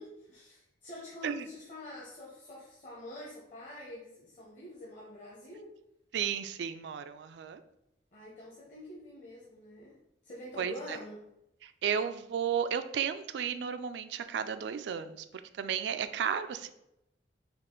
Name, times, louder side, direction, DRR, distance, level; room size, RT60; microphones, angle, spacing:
voice 1, 0.0-5.7 8.1-10.0 10.2-11.2, left 1 dB, 40° left, -5 dB, 0.9 m, -46 dB
voice 2, 6.1-7.6 10.6-11.0 11.6-15.2 15.6-16.7, right 8 dB, 70° right, 11 dB, 0.3 m, -33 dB
5.4 x 2.4 x 3.7 m, 0.86 s
head